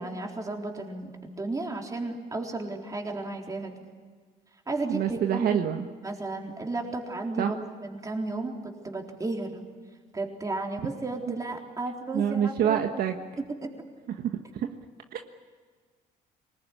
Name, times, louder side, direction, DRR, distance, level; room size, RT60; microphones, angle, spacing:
voice 1, 0.0-3.7 4.7-9.7 10.1-13.0 13.4-13.7, right 2 dB, 20° right, 1 dB, 3.9 m, -34 dB
voice 2, 4.9-5.9 7.4-7.5 12.1-13.1 14.2-14.7 15.1-15.2, right 9 dB, 65° right, 5 dB, 1.5 m, -26 dB
24.0 x 20.5 x 10.0 m, 1.5 s
cardioid pair, 110°, 17 cm